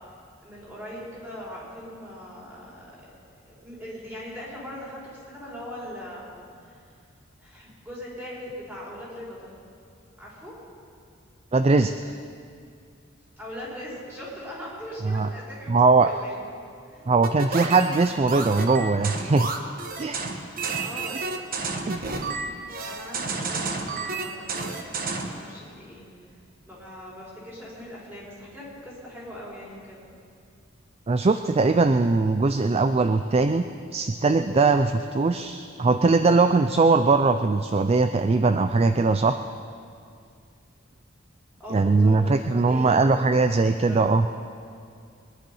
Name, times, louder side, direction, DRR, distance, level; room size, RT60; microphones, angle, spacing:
voice 1, 0.4-2.9 3.2-6.3 6.6-6.9 7.4-9.5 10.2-10.6 13.4-16.4 16.9-17.1 20.4-21.2 22.8-26.0 26.7-30.0 41.6-43.6 43.9-44.1, equal, 10° right, -7 dB, 4.8 m, -40 dB
voice 2, 11.5-12.1 15.0-15.3 15.7-16.1 17.1-19.5 20.0-20.4 21.9-22.1 31.1-33.6 33.9-39.4 41.7-44.3, right 3 dB, 30° right, 9 dB, 0.4 m, -21 dB
sound 1, 17.2-25.4, right 3 dB, 45° right, 1.2 m, -31 dB
22.5 x 10.5 x 5.5 m, 2.4 s
head